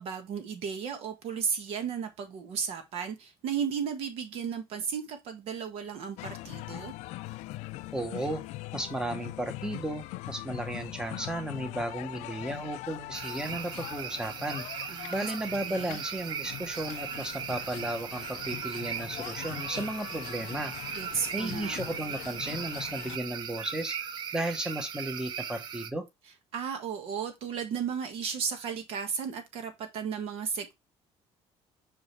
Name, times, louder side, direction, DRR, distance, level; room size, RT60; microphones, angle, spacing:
voice 1, 0.0-6.9 14.9-15.3 15.6-16.0 20.9-21.8 26.5-30.8, right 7 dB, 60° right, 1.5 m, -34 dB
sound 1, 6.2-23.2, left 18 dB, 85° left, 0.4 m, -42 dB
voice 2, 7.9-8.4 8.7-14.7 15.1-20.7 21.3-23.9 24.3-26.1, right 1 dB, 5° right, 1.0 m, -34 dB
sound 2, 13.1-25.9, right 8 dB, 40° right, 0.6 m, -38 dB
5.9 x 4.9 x 3.2 m
cardioid pair, 175°, 11 cm